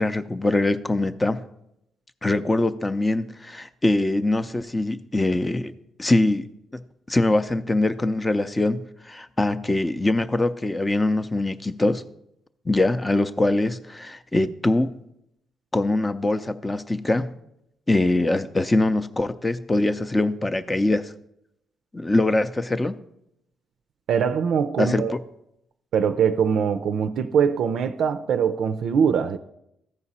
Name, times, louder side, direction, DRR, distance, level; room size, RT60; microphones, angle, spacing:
voice 1, 0.0-1.4 2.2-5.7 6.0-6.5 6.7-6.8 7.1-12.0 12.7-15.0 15.7-17.3 17.9-21.1 21.9-23.0 24.8-25.2, left 2 dB, 20° left, 0.5 m, -23 dB
voice 2, 24.1-25.1 25.9-29.4, right 7 dB, 70° right, 0.4 m, -22 dB
14.0 x 4.9 x 4.1 m
cardioid pair, 90°, 0 cm